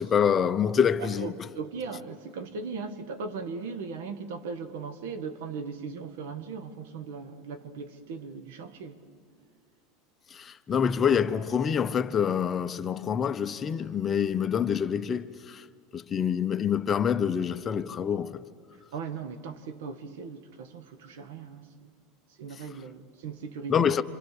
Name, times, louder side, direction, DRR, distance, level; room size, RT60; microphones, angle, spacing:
voice 1, 0.0-1.5 10.3-15.6 15.9-18.4 23.7-24.0, left 7 dB, 30° left, 0.9 m, -26 dB
voice 2, 1.0-9.0 9.3-9.4 18.9-21.9 22.4-23.9, right 5 dB, 80° right, 1.7 m, -38 dB
29.0 x 26.0 x 6.8 m
supercardioid pair, 120°, 0 cm